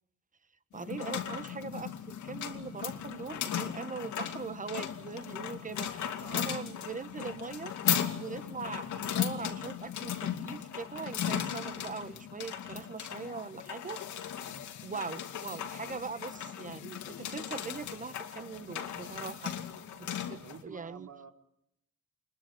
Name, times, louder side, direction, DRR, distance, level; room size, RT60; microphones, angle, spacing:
sound 1, 0.7-20.6, left 9 dB, 75° left, 2.5 m, -37 dB
voice 1, 0.7-7.8 8.1-14.0 14.8-19.5 20.0-21.1, right 5 dB, 25° right, 15 dB, 1.3 m, -41 dB
voice 2, 20.4-21.3, right 7 dB, 60° right, 5 dB, 3.5 m, -49 dB
26.5 x 22.0 x 8.5 m, 0.78 s
cardioid pair, 90°, 30 cm